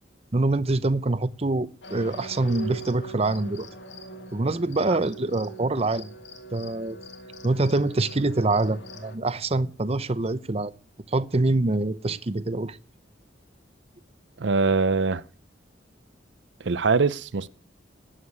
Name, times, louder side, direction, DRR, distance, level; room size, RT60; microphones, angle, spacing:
voice 1, 0.3-3.7 4.3-6.1 6.5-7.0 7.4-10.7 11.1-12.8, right 2 dB, 35° right, 0.7 m, -25 dB
sound 1, 1.8-9.2, right 2 dB, 70° left, 2.4 m, -42 dB
voice 2, 14.4-15.2 16.6-17.5, right 4 dB, 70° right, 0.6 m, -22 dB
13.0 x 9.1 x 9.5 m
head